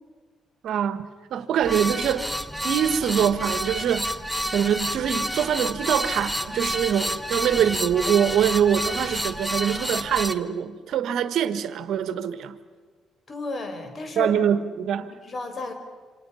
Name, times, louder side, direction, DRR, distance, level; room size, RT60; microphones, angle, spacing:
voice 1, 0.6-2.3 2.6-4.1 4.5-12.5 14.1-15.1, right 9 dB, 75° right, 1.4 m, -24 dB
sound 1, 1.6-10.3, equal, ahead, 1.2 m, -29 dB
voice 2, 13.3-14.3 15.2-15.7, left 2 dB, 45° left, 4.7 m, -32 dB
27.5 x 27.0 x 5.7 m
cardioid pair, 90°, 0 cm